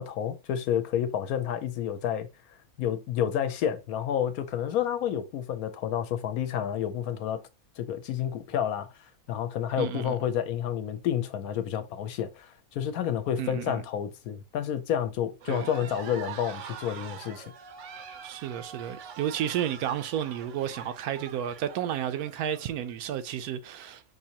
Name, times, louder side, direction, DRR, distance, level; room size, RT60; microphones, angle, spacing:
voice 1, 0.0-2.3 2.8-7.4 7.8-8.9 9.3-17.5, left 9 dB, 80° left, 1.1 m, -30 dB
voice 2, 9.8-10.1 13.4-13.8 15.5-15.7 18.2-24.0, right 10 dB, 85° right, 1.1 m, -32 dB
sound 1, 15.4-23.0, right 7 dB, 65° right, 0.8 m, -44 dB
5.4 x 2.7 x 2.8 m
omnidirectional pair, 1.6 m